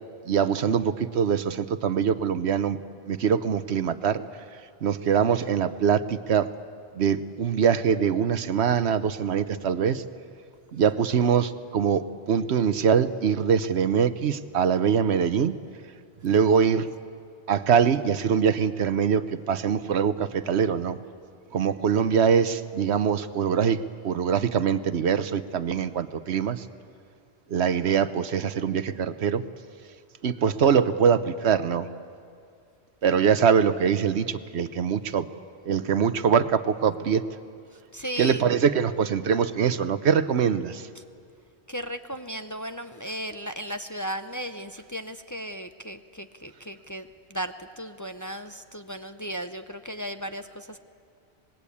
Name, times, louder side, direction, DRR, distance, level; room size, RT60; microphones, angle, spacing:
voice 1, 0.3-2.8 3.1-4.2 4.8-6.5 7.0-10.0 10.7-15.6 16.2-16.9 17.5-21.0 21.5-23.8 24.0-26.6 27.5-29.4 30.2-31.9 33.0-35.3 35.7-37.2 38.2-40.9, right 7 dB, 80° right, 13 dB, 1.1 m, -23 dB
voice 2, 37.9-38.5 41.7-50.8, equal, 20° left, 8 dB, 0.6 m, -35 dB
26.0 x 20.0 x 8.6 m, 2.3 s
omnidirectional pair, 1.1 m